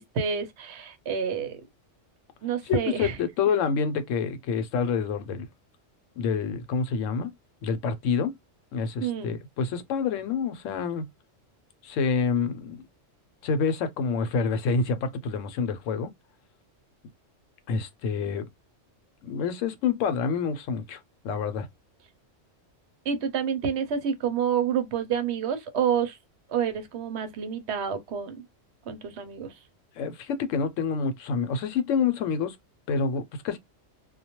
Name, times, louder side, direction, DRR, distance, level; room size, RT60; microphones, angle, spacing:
voice 1, 0.0-1.6 2.4-3.1 9.0-9.3 23.1-26.2 26.5-28.4 28.9-29.5, right 7 dB, 65° right, 0.8 m, -28 dB
voice 2, 2.6-5.5 6.2-7.3 7.6-8.3 8.7-11.1 11.8-12.8 13.4-16.1 17.7-18.5 19.2-21.7 30.0-32.6 32.9-33.6, left 5 dB, 85° left, 0.9 m, -27 dB
2.2 x 2.2 x 2.8 m
omnidirectional pair, 1.3 m